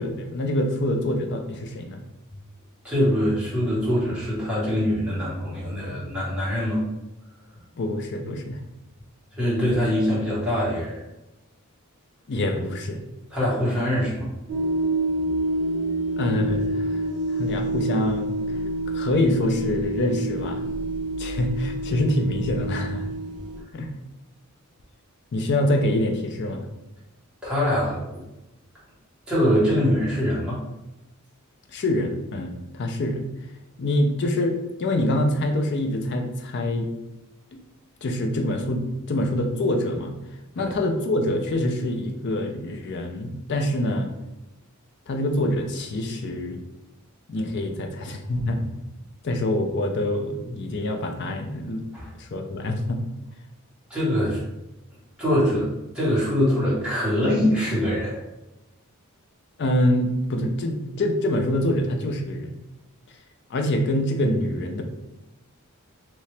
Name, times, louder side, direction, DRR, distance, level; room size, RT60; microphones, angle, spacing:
voice 1, 0.0-2.0 7.8-8.6 12.3-13.0 16.2-17.0 17.3-18.4 18.9-20.6 21.2-23.1 23.7-23.9 25.3-26.7 31.7-33.3 33.8-36.9 38.0-38.8 39.1-40.2 40.6-44.1 45.1-46.6 47.3-48.7 49.2-51.9 52.2-53.0 59.6-62.5 63.5-64.8, left 1 dB, 55° left, 4 dB, 0.5 m, -25 dB
voice 2, 2.8-6.8 9.4-11.0 13.3-14.3 27.4-28.2 29.3-30.6 40.6-40.7 51.9-52.1 53.9-54.4 55.2-55.7 55.9-58.2, equal, 5° right, -9 dB, 1.4 m, -23 dB
sound 1, 14.5-23.6, right 1 dB, 80° right, 0.6 m, -27 dB
3.0 x 2.8 x 3.2 m, 0.96 s
head